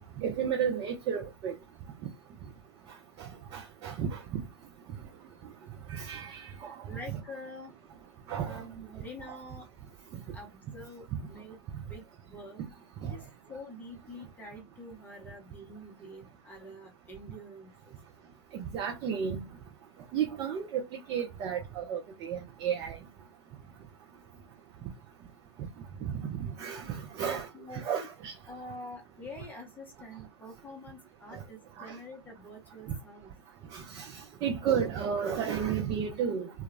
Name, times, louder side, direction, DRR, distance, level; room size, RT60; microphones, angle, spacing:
voice 1, 0.2-1.5 3.2-3.3 3.5-4.4 5.9-6.7 7.1-7.2 8.3-8.6 9.3-9.4 13.0-13.1 18.5-19.4 20.1-23.0 26.1-27.5 27.7-28.3 31.3-31.4 31.8-31.9 33.7-36.5, right 8 dB, 25° right, 0.5 m, -33 dB
voice 2, 6.9-7.7 8.4-9.7 10.3-11.6 11.9-12.6 13.1-17.7 27.2-28.1 28.5-33.3, left 1 dB, 10° left, 0.7 m, -46 dB
2.2 x 2.0 x 3.1 m
figure-of-eight pair, 110°, 14 cm